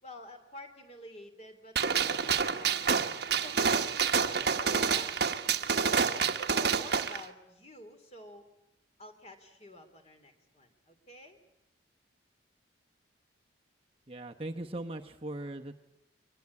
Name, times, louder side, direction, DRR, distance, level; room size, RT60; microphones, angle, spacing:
voice 1, 0.0-3.0 3.4-5.1 5.8-8.4 9.0-11.4, left 1 dB, 35° left, 6 dB, 3.2 m, -49 dB
Gunshot gunfire, 1.8-7.2, right 6 dB, 55° right, 1.1 m, -28 dB
voice 2, 14.1-15.8, right 1 dB, 30° right, 4 dB, 1.0 m, -39 dB
23.5 x 21.0 x 9.6 m, 0.87 s
head